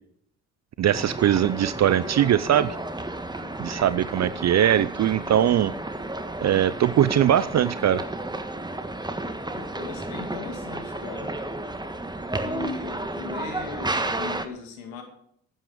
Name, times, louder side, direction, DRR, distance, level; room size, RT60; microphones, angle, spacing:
voice 1, 0.8-2.8 3.6-5.7 6.4-8.1, right 10 dB, 45° right, 16 dB, 0.6 m, -21 dB
sound 1, 0.9-14.5, right 2 dB, 10° right, 1.5 m, -32 dB
voice 2, 3.4-3.8 9.5-11.3 12.4-15.0, left 4 dB, 85° left, 3 dB, 2.6 m, -38 dB
14.0 x 9.2 x 5.0 m, 0.68 s
hypercardioid pair, 50°, 39 cm